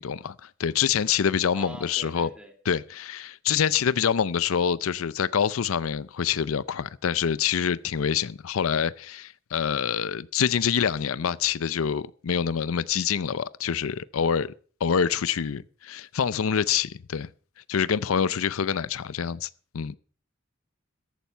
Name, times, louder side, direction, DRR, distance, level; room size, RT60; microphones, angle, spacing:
voice 1, 0.0-2.3 2.7-14.5 14.8-17.3 17.7-19.5 19.7-20.0, left 7 dB, 90° left, 0.5 m, -26 dB
voice 2, 1.5-2.5 18.1-18.4, equal, 5° right, 2.6 m, -44 dB
14.0 x 11.5 x 4.5 m
head